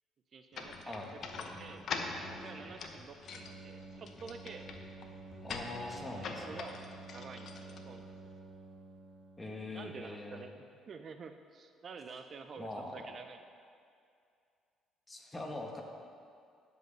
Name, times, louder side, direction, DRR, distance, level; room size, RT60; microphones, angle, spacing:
voice 1, 0.3-1.1 1.4-1.8 2.3-4.6 5.9-6.8 7.1-8.1 9.7-13.4, right 5 dB, 45° right, 8 dB, 0.5 m, -49 dB
sound 1, 0.5-8.4, left 4 dB, 55° left, 0.9 m, -44 dB
sound 2, 1.2-9.8, right 2 dB, 25° right, 1.7 m, -51 dB
voice 2, 5.4-6.6 9.4-10.4 12.6-13.1 15.1-15.8, left 2 dB, 15° left, 1 dB, 1.4 m, -42 dB
9.1 x 5.5 x 6.5 m, 2.4 s
cardioid pair, 95°, 0 cm